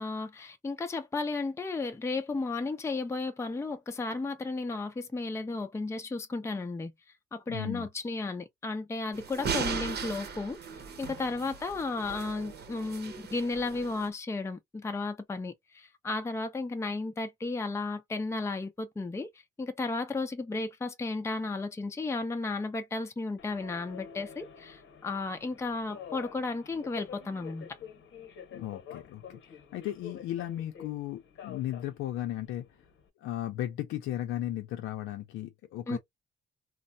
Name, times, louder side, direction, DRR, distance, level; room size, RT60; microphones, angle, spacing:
voice 1, 0.0-6.9 7.3-10.6 11.0-19.3 19.6-27.8 35.9-36.0, left 3 dB, 15° left, 0.5 m, -34 dB
voice 2, 7.5-7.9 28.5-32.7 33.2-36.0, left 13 dB, 90° left, 0.5 m, -35 dB
sound 1, 9.1-14.1, right 5 dB, 55° right, 0.8 m, -38 dB
Subway metro underground, 23.4-33.1, left 7 dB, 75° left, 0.9 m, -48 dB
3.2 x 2.0 x 2.6 m
cardioid pair, 90°, 20 cm